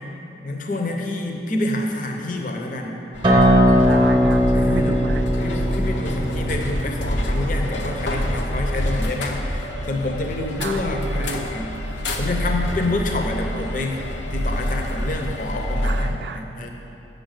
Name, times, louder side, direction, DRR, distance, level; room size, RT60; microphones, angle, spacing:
voice 1, 0.4-3.0 4.5-5.0 5.4-11.7 12.2-14.0 14.3-16.7, left 2 dB, 45° left, 2 dB, 0.7 m, -28 dB
sound 1, 3.1-16.1, equal, 85° left, 0.8 m, -26 dB
Acoustic guitar, 3.2-8.4, equal, 25° right, 0.8 m, -20 dB
voice 2, 3.9-5.3 10.6-11.5 15.8-16.5, right 4 dB, 70° right, 8 dB, 0.4 m, -31 dB
6.8 x 6.4 x 6.5 m, 2.9 s
head